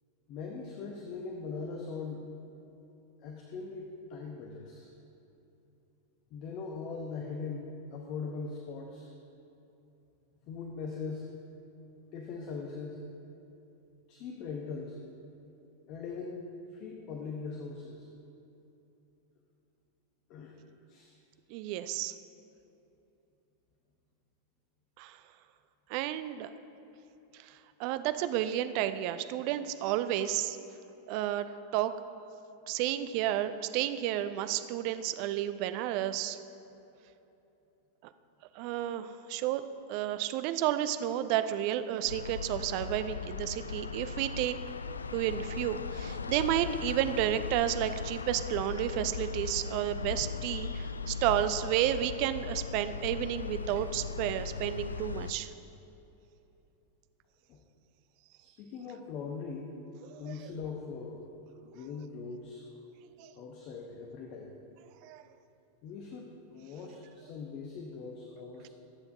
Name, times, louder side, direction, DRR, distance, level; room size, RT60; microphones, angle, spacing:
voice 1, 0.3-2.3 3.2-4.9 6.3-9.1 10.5-11.3 12.1-13.0 14.1-15.0 15.9-16.4 16.7-18.1 20.3-20.5 20.9-21.1 57.5-57.6 58.4-59.8 60.2-61.3 61.6-62.6 63.3-64.5 65.8-68.7, left 4 dB, 40° left, 2 dB, 1.0 m, -41 dB
voice 2, 21.5-22.1 25.0-25.2 25.9-26.5 27.4-30.6 31.1-31.5 31.7-31.9 32.7-36.4 38.5-39.6 39.9-44.6 45.1-55.5 60.1-60.5 63.2-63.3 65.0-65.2, right 12 dB, 45° right, 11 dB, 0.5 m, -31 dB
sound 1, 42.0-55.3, left 5 dB, 75° left, 0.3 m, -38 dB
21.5 x 8.1 x 2.7 m, 2.9 s
figure-of-eight pair, 90°, 0 cm